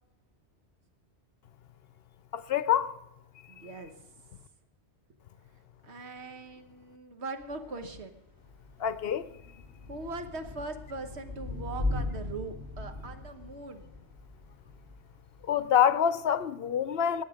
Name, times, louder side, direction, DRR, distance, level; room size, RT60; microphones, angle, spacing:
voice 1, 2.3-2.9 8.8-9.3 15.5-17.2, left 9 dB, 65° left, 0.8 m, -26 dB
voice 2, 3.5-3.9 5.8-8.2 9.9-13.9, right 3 dB, 75° right, 1.4 m, -41 dB
Thunder / Rain, 7.4-15.7, left 2 dB, 25° right, 2.7 m, -39 dB
20.0 x 7.9 x 5.0 m
omnidirectional pair, 1.1 m